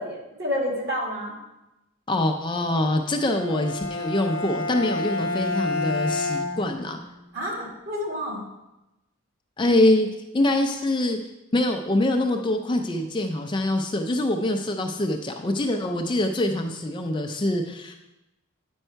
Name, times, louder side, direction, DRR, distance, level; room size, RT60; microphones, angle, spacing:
voice 1, 0.0-1.3 7.3-8.4, equal, 50° right, -2 dB, 2.0 m, -29 dB
voice 2, 2.1-7.0 9.6-10.1 10.3-11.2 11.5-18.0, left 1 dB, 20° left, 4 dB, 0.4 m, -24 dB
Bowed string instrument, 3.2-7.3, left 3 dB, 60° left, 0.8 m, -29 dB
8.9 x 5.4 x 4.5 m, 0.96 s
head